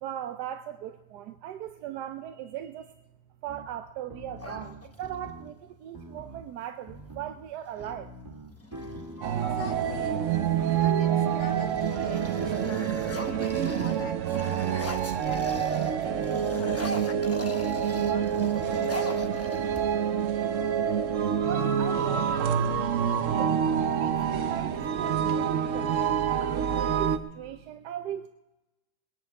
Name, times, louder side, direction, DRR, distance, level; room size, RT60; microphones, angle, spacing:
voice 1, 0.0-2.9 3.4-8.1 21.4-22.6 23.4-23.5 23.9-26.0 26.4-28.3, right 11 dB, 90° right, 8 dB, 1.2 m, -38 dB
sound 1, 3.5-3.6 4.1-5.5 5.9-6.4 6.9-7.3 7.8-14.1, right 1 dB, 15° right, 1.8 m, -43 dB
sound 2, 4.4-5.3 7.0-7.1 7.5-8.0 8.5-10.0 10.7-11.1 11.4-16.0 16.2-20.2, left 1 dB, 15° left, 0.6 m, -39 dB
sound 3, 9.2-27.2, right 8 dB, 60° right, 1.0 m, -27 dB
voice 2, 9.3-10.2 10.8-12.9 13.3-14.8 15.2-18.5, left 7 dB, 80° left, 8 dB, 1.5 m, -43 dB
20.0 x 10.5 x 4.6 m, 1.0 s
omnidirectional pair, 1.7 m